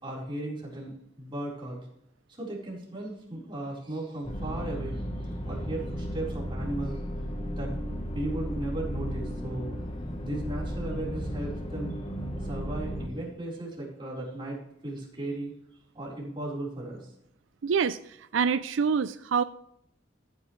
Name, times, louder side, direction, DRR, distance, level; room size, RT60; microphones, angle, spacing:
voice 1, 0.0-1.9 2.3-7.0 7.6-7.7 8.1-9.7 10.2-12.0 12.4-14.6 14.8-15.5 15.9-17.1, right 1 dB, 25° right, -4 dB, 4.2 m, -36 dB
sound 1, 4.2-13.1, equal, 30° left, 1.2 m, -34 dB
voice 2, 17.6-19.4, right 6 dB, 80° right, 13 dB, 0.4 m, -26 dB
15.0 x 9.7 x 3.2 m, 0.76 s
head